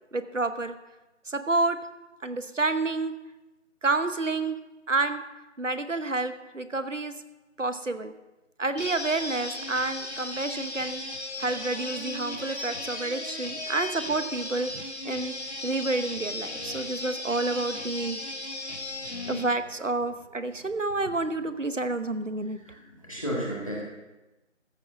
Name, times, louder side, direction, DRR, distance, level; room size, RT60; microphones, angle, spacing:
voice 1, 0.1-0.8 1.3-1.8 2.2-3.1 3.8-4.6 4.9-5.2 5.6-7.2 7.6-8.1 8.6-11.0 11.4-15.3 15.6-18.2 19.3-22.6, right 3 dB, 75° right, 11 dB, 1.0 m, -29 dB
sound 1, 8.8-19.5, left 1 dB, 60° left, 1.9 m, -36 dB
voice 2, 22.6-23.8, equal, 25° left, -3 dB, 1.8 m, -34 dB
14.0 x 7.2 x 5.9 m, 1.1 s
figure-of-eight pair, 170°, 38 cm